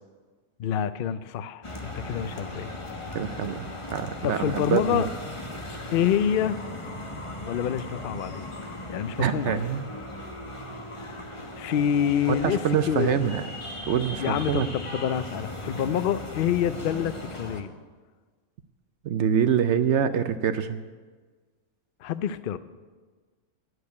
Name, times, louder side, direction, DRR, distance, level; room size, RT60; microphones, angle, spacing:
voice 1, 0.6-2.7 4.2-5.1 5.9-6.6 7.5-8.5 8.9-9.6 11.6-12.6 12.9-13.2 14.2-17.7 22.0-22.6, left 9 dB, 80° left, 14 dB, 0.4 m, -27 dB
sound 1, 1.6-17.6, left 1 dB, 25° left, 1.2 m, -38 dB
voice 2, 3.1-5.1 9.2-9.9 12.3-13.4 13.9-14.7 19.0-20.8, right 8 dB, 65° right, 10 dB, 0.8 m, -25 dB
10.5 x 7.9 x 9.4 m, 1.4 s
omnidirectional pair, 1.5 m